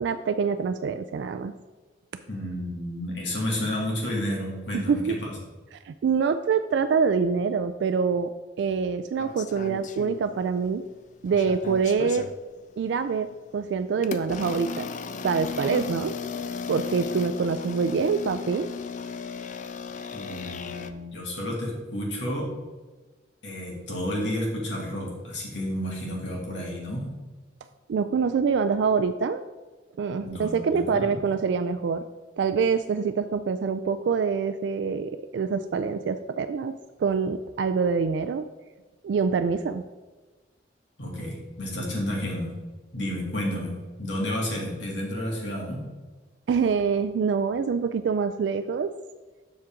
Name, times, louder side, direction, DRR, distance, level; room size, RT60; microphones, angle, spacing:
voice 1, 0.0-1.5 4.7-5.2 5.9-8.3 8.6-10.8 11.2-12.3 12.8-14.9 15.2-16.1 16.7-18.7 27.9-29.4 30.0-32.0 32.4-36.7 37.0-38.5 39.0-39.8 46.5-48.9, right 5 dB, 75° right, 9 dB, 0.3 m, -25 dB
voice 2, 2.3-5.3 20.1-22.5 23.4-27.1 30.2-31.2 41.0-42.5 42.9-45.9, left 1 dB, 85° left, -2 dB, 2.3 m, -31 dB
sound 1, 9.2-10.7 11.0-12.4 13.0-13.2 14.0-20.9, left 5 dB, 45° left, 0.4 m, -35 dB
7.3 x 6.4 x 3.6 m, 1.3 s
head